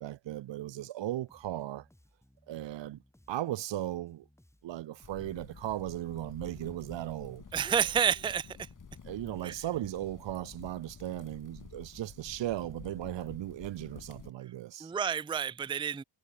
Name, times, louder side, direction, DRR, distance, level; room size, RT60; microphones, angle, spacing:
voice 1, 0.0-1.9 2.5-3.0 3.3-4.2 4.6-7.4 9.0-14.9, right 14 dB, 65° right, 0.7 m, -37 dB
Bass guitar, 1.3-11.2, left 1 dB, 5° left, 6.1 m, -65 dB
sound 1, 5.0-14.3, left 6 dB, 40° left, 4.5 m, -50 dB
voice 2, 7.5-8.7 9.4-9.5 14.8-16.0, right 8 dB, 10° right, 0.4 m, -29 dB
wide cardioid pair, 130°, 49 cm